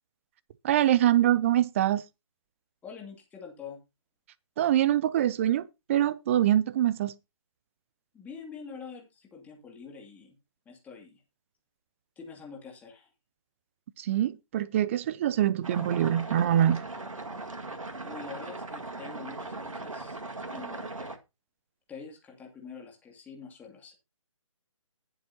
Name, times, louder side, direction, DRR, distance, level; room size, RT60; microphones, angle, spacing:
voice 1, 0.6-2.0 4.6-7.1 14.0-16.8, right 11 dB, 25° right, 0.6 m, -24 dB
voice 2, 2.8-3.8 8.1-10.4 10.7-11.2 12.2-13.1 18.0-20.2 20.5-21.1 21.9-23.9, left 5 dB, 10° left, 2.5 m, -45 dB
sound 1, 15.6-21.2, right 2 dB, 75° right, 1.9 m, -39 dB
20.0 x 7.6 x 2.8 m
figure-of-eight pair, 145°, 17 cm